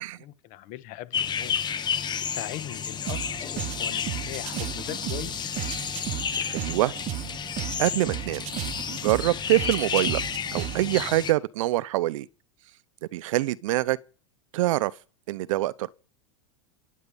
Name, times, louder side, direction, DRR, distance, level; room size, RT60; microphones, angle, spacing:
voice 1, 0.0-1.6 2.2-5.5, left 15 dB, 50° left, 1.6 m, -40 dB
sound 1, 1.1-11.3, left 7 dB, 25° left, 1.3 m, -31 dB
sound 2, 3.1-11.1, right 15 dB, 40° right, 0.9 m, -35 dB
voice 2, 6.5-6.9 7.8-8.5 9.0-10.2 10.5-12.3 13.1-14.0 14.5-14.9 15.3-15.9, right 16 dB, 70° right, 0.7 m, -25 dB
28.0 x 9.4 x 5.3 m
hypercardioid pair, 115°, 17 cm